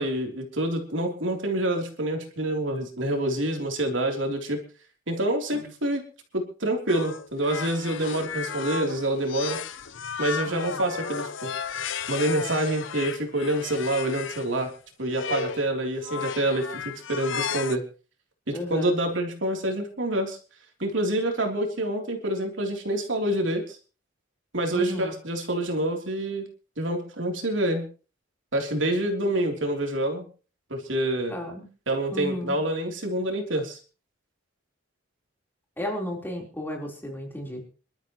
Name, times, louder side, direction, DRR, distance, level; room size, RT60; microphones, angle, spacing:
voice 1, 0.0-4.6 5.1-6.0 6.3-9.6 10.2-11.8 12.1-14.7 15.0-17.8 18.5-20.4 20.8-23.8 24.5-26.4 26.8-27.8 28.5-30.2 30.7-31.4 31.9-33.8, right 1 dB, 75° right, 2 dB, 3.4 m, -27 dB
sound 1, 6.9-14.5 15.1-15.7 16.0-17.8, left 7 dB, 80° left, 0.8 m, -34 dB
voice 2, 10.5-10.8 18.5-18.9 24.7-25.1 31.3-31.7 32.1-32.5 35.8-37.6, left 1 dB, 10° left, 0 dB, 4.0 m, -33 dB
26.5 x 12.5 x 3.1 m, 0.37 s
head